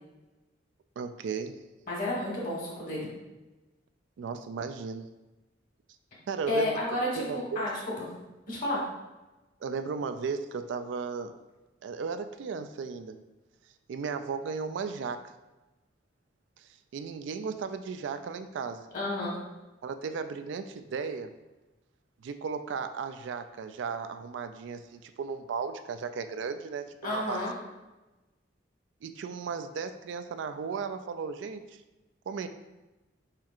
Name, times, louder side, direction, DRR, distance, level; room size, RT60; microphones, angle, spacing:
voice 1, 1.0-1.6 4.2-5.0 6.3-6.8 7.1-7.6 9.6-11.4 11.8-13.2 13.9-15.3 16.6-18.9 19.8-21.3 22.2-27.4 29.0-31.8 32.3-32.5, right 5 dB, 70° right, 10 dB, 0.3 m, -35 dB
voice 2, 1.9-3.1 6.5-8.1 8.5-8.8 18.9-19.4 27.0-27.5, left 1 dB, 45° left, -4 dB, 1.4 m, -31 dB
4.8 x 4.4 x 2.4 m, 1.1 s
head